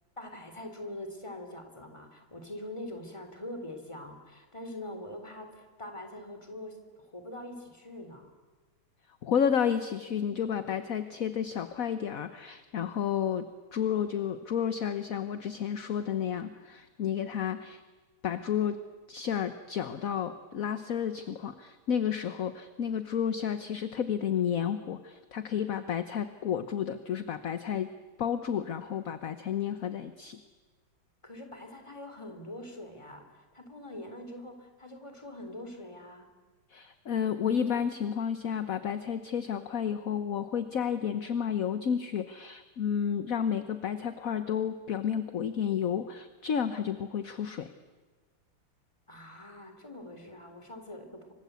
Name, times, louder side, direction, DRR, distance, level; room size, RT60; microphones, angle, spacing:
voice 1, 0.2-8.3 31.2-36.3 49.1-51.3, left 1 dB, 15° left, 6 dB, 3.5 m, -43 dB
voice 2, 9.2-17.8 18.2-18.8 19.1-27.9 28.2-30.4 36.7-47.7, left 8 dB, 50° left, 10 dB, 1.2 m, -31 dB
29.0 x 25.0 x 8.2 m, 1.3 s
omnidirectional pair, 2.4 m